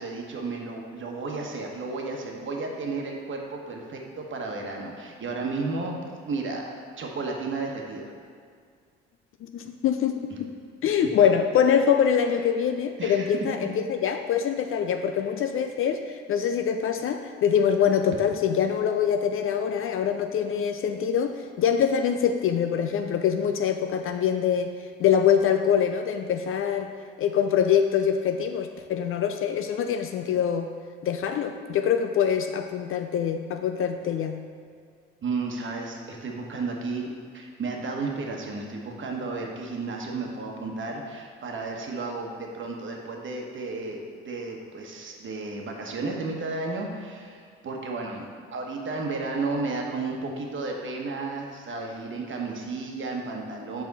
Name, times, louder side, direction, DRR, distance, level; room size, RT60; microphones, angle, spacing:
voice 1, 0.0-5.9 6.2-8.1 13.0-13.3 35.2-37.1 37.3-53.8, right 3 dB, 40° right, 1 dB, 1.3 m, -33 dB
voice 2, 9.4-10.3 10.8-24.7 25.0-26.9 27.2-30.7 31.0-34.4, left 8 dB, 45° left, 7 dB, 0.4 m, -24 dB
7.3 x 4.2 x 4.1 m, 2.1 s
hypercardioid pair, 60°, 30 cm